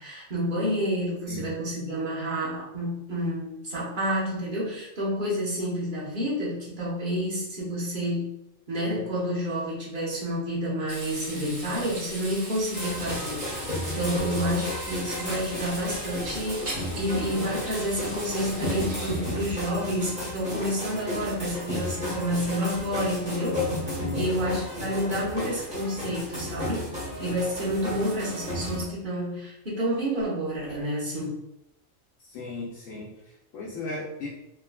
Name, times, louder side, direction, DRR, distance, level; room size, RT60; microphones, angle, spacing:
voice 1, 0.0-8.3 8.7-13.4 13.9-23.7 24.1-26.8 27.2-31.4, equal, 40° right, -6 dB, 1.1 m, -29 dB
Frying (food), 10.9-19.2, right 1 dB, 60° right, 1.3 m, -39 dB
sound 1, 12.7-28.8, left 1 dB, 5° right, 1.0 m, -33 dB
voice 2, 24.0-24.3 32.2-34.3, left 2 dB, 80° left, -4 dB, 1.0 m, -36 dB
3.7 x 2.4 x 2.2 m, 0.85 s
omnidirectional pair, 1.4 m